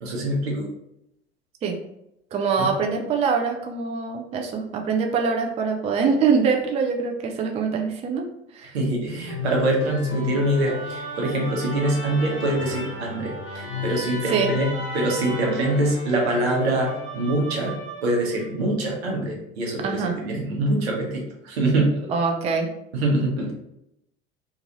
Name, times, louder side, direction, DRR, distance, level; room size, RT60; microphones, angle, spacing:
voice 1, 0.0-0.7 2.6-2.7 8.7-17.7 18.0-22.0 22.9-23.5, right 1 dB, 75° right, -2 dB, 1.0 m, -24 dB
voice 2, 2.3-8.3 8.5-8.8 14.3-14.5 19.8-20.2 22.1-22.7, right 5 dB, 20° right, 3 dB, 0.4 m, -24 dB
Musical instrument, 9.3-18.5, left 3 dB, 45° left, 1.0 m, -33 dB
2.6 x 2.5 x 2.8 m, 0.83 s
hypercardioid pair, 75°, 32 cm